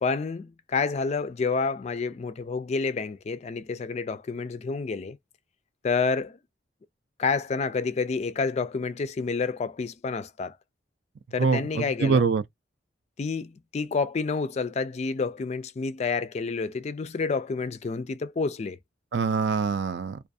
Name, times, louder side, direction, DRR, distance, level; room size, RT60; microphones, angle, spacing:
voice 1, 0.0-5.2 5.8-6.4 7.2-10.6 11.3-12.3 13.2-18.8, left 4 dB, 35° left, 0.3 m, -29 dB
voice 2, 11.4-12.4 19.1-20.2, right 5 dB, 60° right, 0.4 m, -24 dB
2.4 x 2.3 x 2.6 m
head